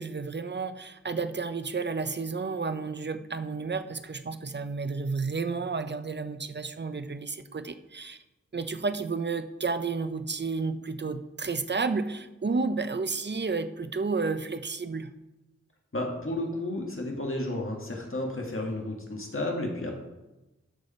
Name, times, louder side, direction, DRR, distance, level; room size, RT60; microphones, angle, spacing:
voice 1, 0.0-8.2 8.5-15.1, right 4 dB, 40° right, 11 dB, 0.6 m, -31 dB
voice 2, 15.9-19.9, left 1 dB, 45° left, 0 dB, 1.7 m, -32 dB
13.0 x 4.9 x 4.2 m, 1.0 s
wide cardioid pair, 65°, 29 cm